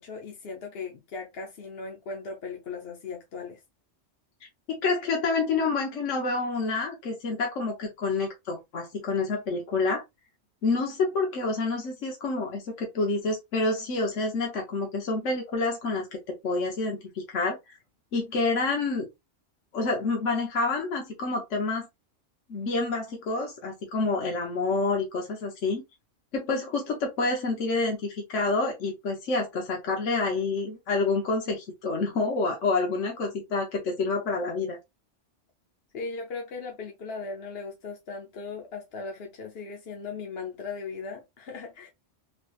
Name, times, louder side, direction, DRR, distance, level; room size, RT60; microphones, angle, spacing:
voice 1, 0.0-3.6 35.9-41.9, left 4 dB, 60° left, 1.0 m, -38 dB
voice 2, 4.7-10.0 10.6-17.8 18.1-19.1 19.7-21.9 22.5-25.8 26.3-34.8, left 3 dB, 75° left, 1.3 m, -28 dB
3.4 x 3.3 x 2.4 m
omnidirectional pair, 1.3 m